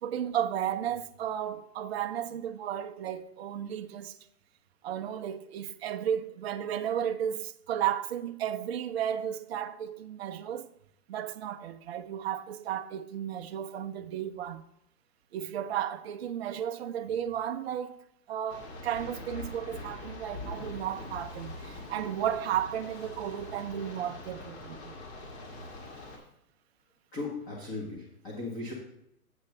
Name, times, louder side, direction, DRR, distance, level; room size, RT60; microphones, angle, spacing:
voice 1, 0.0-4.2 4.8-10.7 11.1-14.6 15.3-18.0 18.3-24.9, right 10 dB, 45° right, 0.5 m, -34 dB
sound 1, 18.5-26.2, left 2 dB, 45° left, 2.1 m, -43 dB
voice 2, 27.1-28.7, left 3 dB, 20° left, 1.2 m, -37 dB
8.1 x 7.9 x 3.2 m
hypercardioid pair, 150°, 46 cm